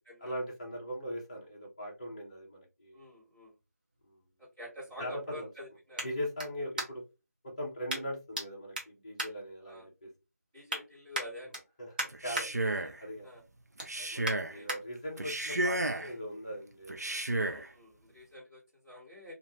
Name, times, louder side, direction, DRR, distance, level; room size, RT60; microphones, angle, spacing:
voice 1, 0.2-3.0 4.1-4.2 5.0-5.5 6.0-7.0 7.6-10.1 11.8-11.9 12.2-12.6 13.0-13.3 14.0-17.5, equal, 25° left, -2 dB, 0.8 m, -40 dB
voice 2, 2.9-3.6 4.4-6.1 9.6-9.9 10.5-11.6 12.8-13.4 14.2-14.7 17.4-19.3, left 1 dB, 15° right, -10 dB, 1.5 m, -48 dB
sound 1, 3.1-7.2 7.9-8.5 8.7-10.0 10.4-10.8 11.1-12.5 12.9-13.2 13.5-14.8 15.3-15.4, right 1 dB, 30° right, 0.8 m, -39 dB
Male speech man speaking, 12.1-13.0 13.8-14.6 15.2-16.1 16.9-17.7, right 2 dB, 70° right, 0.5 m, -33 dB
2.6 x 2.5 x 3.0 m, 0.27 s
figure-of-eight pair, 165°, 9 cm